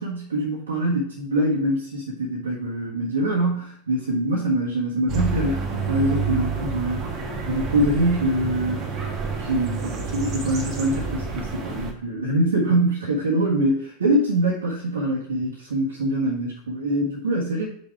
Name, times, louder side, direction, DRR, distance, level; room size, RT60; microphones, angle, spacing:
voice 1, 0.0-7.1 7.5-8.9 9.4-17.6, right 1 dB, 70° right, -5 dB, 1.6 m, -24 dB
sound 1, 5.1-11.9, right 5 dB, 35° right, 1.4 m, -28 dB
5.5 x 5.2 x 4.7 m, 0.62 s
figure-of-eight pair, 90°, 0 cm